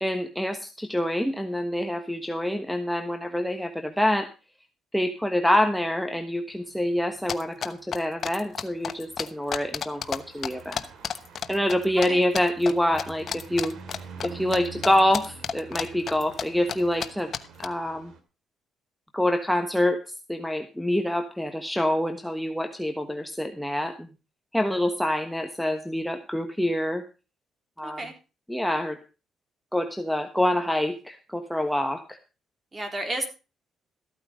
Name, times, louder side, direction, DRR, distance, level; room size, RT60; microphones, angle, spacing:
voice 1, 0.0-4.3 4.9-10.8 11.5-13.7 14.2-17.3 17.6-18.1 19.1-20.0 20.3-24.1 24.5-27.0 27.8-28.0 28.5-29.0 29.7-32.2, left 1 dB, ahead, 5 dB, 1.2 m, -26 dB
sound 1, 6.5-18.2, right 5 dB, 75° right, 2.6 m, -47 dB
sound 2, 7.3-10.2 10.4-12.1 12.3-12.7 13.0-14.6 14.8-16.4 16.7-16.8 17.0-17.1 17.3-17.7, left 7 dB, 55° left, 1.1 m, -31 dB
voice 2, 27.8-28.1 32.7-33.3, right 1 dB, 25° right, 5 dB, 3.8 m, -31 dB
14.0 x 8.9 x 5.1 m, 0.32 s
cardioid pair, 90°, 0 cm